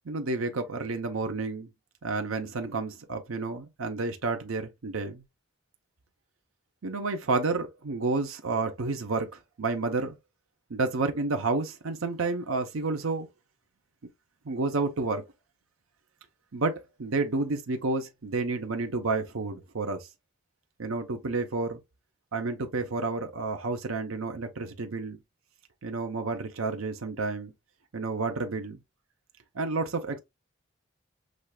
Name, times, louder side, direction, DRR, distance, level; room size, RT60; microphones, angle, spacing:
voice 1, 0.0-1.7 2.0-5.2 6.8-10.2 10.7-13.3 14.4-15.2 16.5-20.1 20.8-21.8 22.3-25.2 25.8-27.5 27.9-28.8 29.5-30.2, right 3 dB, 90° right, 0.8 m, -30 dB
6.3 x 3.2 x 2.3 m
head